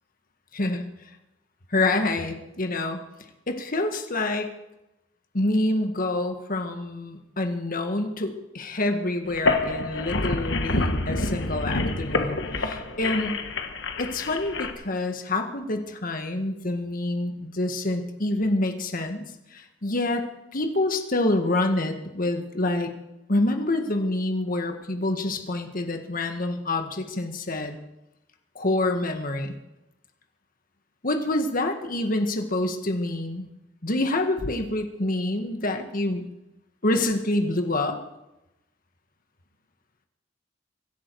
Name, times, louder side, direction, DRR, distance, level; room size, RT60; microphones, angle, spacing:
voice 1, 0.5-0.8 1.7-3.0 3.5-4.5 5.3-13.4 14.0-19.3 19.5-20.2 20.5-22.9 23.3-27.8 28.6-29.6 31.0-33.5 33.8-36.2 36.8-38.0, left 2 dB, 50° left, 5 dB, 1.8 m, -27 dB
sound 1, 9.3-14.7, left 2 dB, 70° left, 1.5 m, -27 dB
25.0 x 11.5 x 4.8 m, 0.94 s
head